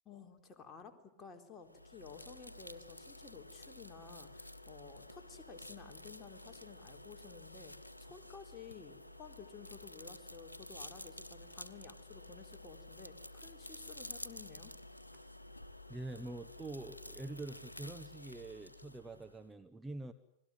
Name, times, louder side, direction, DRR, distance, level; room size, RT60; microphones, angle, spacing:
voice 1, 0.1-14.7, left 5 dB, 20° left, 3 dB, 3.9 m, -54 dB
sound 1, 1.6-19.5, left 1 dB, 85° left, 1.2 m, -51 dB
voice 2, 15.9-20.1, right 2 dB, 10° right, 7 dB, 1.1 m, -45 dB
30.0 x 21.5 x 7.9 m, 0.81 s
figure-of-eight pair, 90°, 0 cm